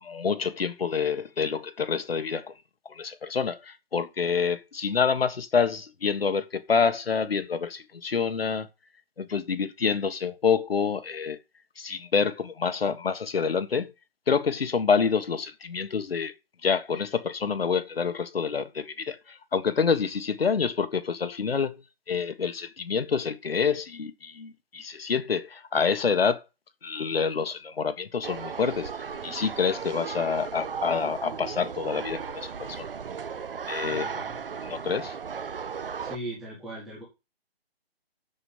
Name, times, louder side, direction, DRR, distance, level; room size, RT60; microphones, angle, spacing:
voice 1, 0.0-2.5 2.8-8.7 9.2-11.4 11.8-13.9 14.3-16.3 16.6-21.8 22.1-26.4 26.8-28.9 29.2-32.9 33.7-34.1 34.7-35.2, left 5 dB, 65° left, 1.5 m, -27 dB
sound 1, 28.2-36.2, right 6 dB, 60° right, 0.9 m, -36 dB
voice 2, 33.9-34.4 36.0-37.0, right 1 dB, ahead, 0.7 m, -39 dB
7.3 x 6.9 x 7.3 m
hypercardioid pair, 170°, 31 cm